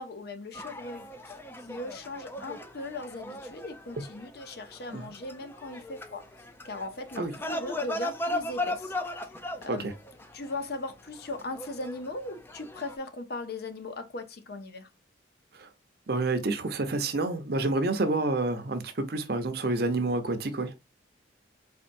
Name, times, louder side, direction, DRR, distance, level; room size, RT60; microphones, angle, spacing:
voice 1, 0.0-1.4 1.7-6.2 6.6-8.9 9.6-9.9 10.3-14.9, left 2 dB, 55° left, 0.6 m, -38 dB
sound 1, 0.5-13.0, left 1 dB, 10° left, 0.4 m, -38 dB
voice 2, 16.1-20.7, right 2 dB, 55° right, 0.7 m, -28 dB
4.4 x 3.5 x 2.5 m
head